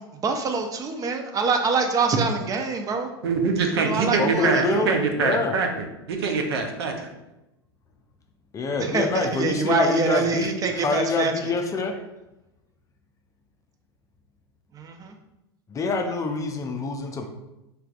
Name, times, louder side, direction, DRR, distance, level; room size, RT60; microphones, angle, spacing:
voice 1, 0.0-3.1 3.7-4.8 8.8-11.5 14.7-15.1, right 4 dB, 25° right, 5 dB, 0.6 m, -25 dB
voice 2, 3.2-7.1, right 4 dB, 70° right, 3 dB, 0.7 m, -24 dB
voice 3, 4.2-4.9 5.2-5.5 8.5-12.0 15.7-17.3, left 3 dB, 25° left, 4 dB, 0.5 m, -26 dB
4.5 x 3.3 x 2.4 m, 0.95 s
hypercardioid pair, 90°, 13 cm